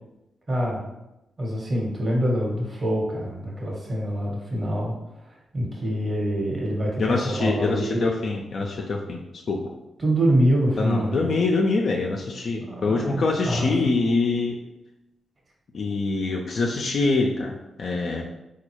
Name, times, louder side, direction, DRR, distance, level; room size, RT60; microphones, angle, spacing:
voice 1, 0.5-0.9 1.4-4.9 5.5-8.1 10.0-11.3 12.6-13.9, equal, 35° right, -2 dB, 1.3 m, -25 dB
voice 2, 7.0-9.2 9.5-9.6 10.8-14.6 15.7-18.2, left 3 dB, 65° left, 0 dB, 0.4 m, -24 dB
4.0 x 2.3 x 3.0 m, 0.92 s
supercardioid pair, 45°, 0 cm